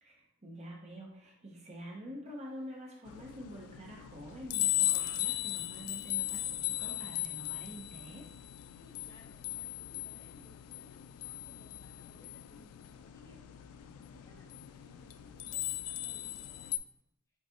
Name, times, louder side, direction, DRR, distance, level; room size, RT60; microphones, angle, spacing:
voice 1, 0.0-8.3, equal, 30° right, -1 dB, 0.8 m, -47 dB
Human voice, 3.0-3.6 4.0-6.2 6.6-7.7 7.9-8.2, right 7 dB, 60° right, 0.3 m, -60 dB
sound 1, 3.1-16.8, left 16 dB, 80° left, 0.3 m, -38 dB
voice 2, 8.8-13.4 13.9-16.7, right 1 dB, 15° left, -3 dB, 0.8 m, -62 dB
4.5 x 3.9 x 2.9 m, 0.79 s
head